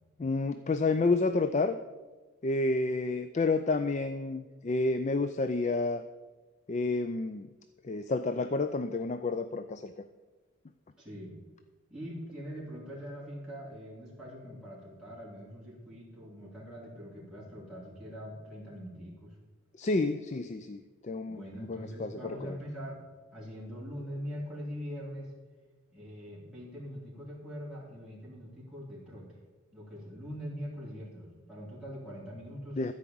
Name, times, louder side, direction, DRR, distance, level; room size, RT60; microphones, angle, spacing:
voice 1, 0.2-1.8 2.4-6.0 6.7-7.5 7.8-10.0 19.8-22.6 32.8-32.9, left 3 dB, 30° left, 10 dB, 0.4 m, -30 dB
voice 2, 11.0-11.3 11.9-19.4 21.3-23.0 23.3-25.3 25.9-29.3 29.7-32.8, equal, 5° right, -8 dB, 3.0 m, -43 dB
13.5 x 4.9 x 8.5 m, 1.3 s
head